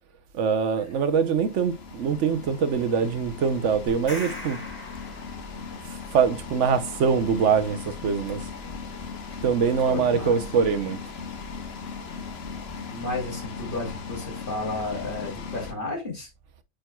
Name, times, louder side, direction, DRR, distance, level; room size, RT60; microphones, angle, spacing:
voice 1, 0.3-4.6 6.1-8.5 9.4-11.0, right 6 dB, 80° right, 1.2 m, -23 dB
sound 1, 0.9-15.7, left 5 dB, 60° left, 1.1 m, -38 dB
sound 2, 3.9-5.8, left 1 dB, 10° left, 3.4 m, -39 dB
voice 2, 9.9-10.4 12.9-16.3, left 2 dB, 45° left, 3.1 m, -32 dB
9.0 x 5.1 x 2.3 m
omnidirectional pair, 1.2 m